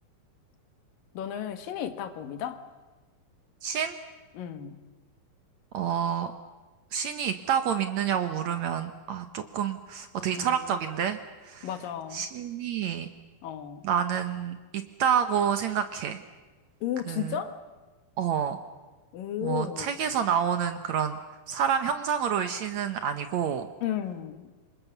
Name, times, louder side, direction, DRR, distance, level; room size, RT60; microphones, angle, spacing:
voice 1, 1.1-2.6 4.3-4.8 10.3-10.6 11.6-12.2 13.4-13.8 16.8-17.6 19.1-20.0 23.8-24.5, left 10 dB, 75° left, 9 dB, 3.1 m, -34 dB
voice 2, 3.6-4.0 5.7-6.3 6.9-11.2 11.4-11.7 12.1-13.1 13.8-16.2 17.1-17.4 18.2-18.6 19.4-21.2 21.5-23.7, right 8 dB, 65° right, 9 dB, 1.9 m, -28 dB
27.5 x 25.0 x 7.1 m, 1.2 s
omnidirectional pair, 4.1 m